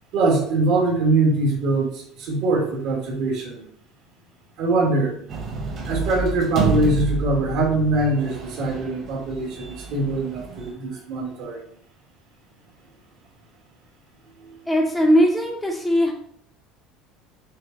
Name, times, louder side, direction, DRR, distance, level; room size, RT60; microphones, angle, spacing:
voice 1, 0.1-3.6 4.6-5.1 5.9-11.6 14.4-14.5, right 2 dB, 65° right, -2 dB, 1.6 m, -22 dB
sound 1, 5.3-10.7, right 4 dB, 35° right, 1.2 m, -29 dB
voice 2, 14.7-16.1, equal, 5° left, -2 dB, 0.6 m, -19 dB
6.3 x 2.2 x 3.9 m, 0.66 s
cardioid pair, 155°, 0 cm